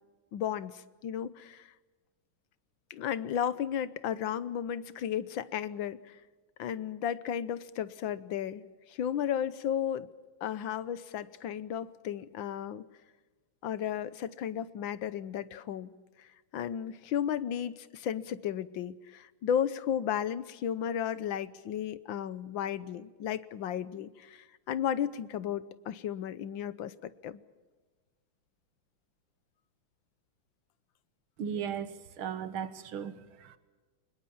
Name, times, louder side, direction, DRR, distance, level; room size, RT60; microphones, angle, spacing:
voice 1, 0.3-1.7 2.9-6.2 6.6-10.1 10.4-12.8 13.6-15.9 16.2-16.3 16.5-27.4, left 9 dB, 70° left, 16 dB, 1.6 m, -34 dB
voice 2, 31.4-33.6, right 8 dB, 85° right, 13 dB, 2.2 m, -37 dB
24.5 x 21.0 x 7.2 m, 1.3 s
omnidirectional pair, 2.3 m